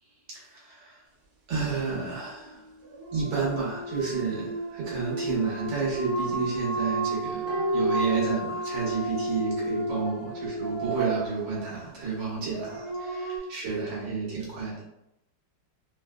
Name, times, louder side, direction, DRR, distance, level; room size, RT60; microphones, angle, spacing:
voice 1, 0.3-1.0 1.5-2.7 3.1-14.8, right 5 dB, 85° right, -6 dB, 1.8 m, -31 dB
sound 1, 2.8-13.4, right 2 dB, 60° right, 1.2 m, -33 dB
sound 2, 7.5-9.1 9.4-9.5, equal, 45° left, 0.5 m, -30 dB
3.8 x 2.0 x 2.2 m, 0.83 s
omnidirectional pair, 2.0 m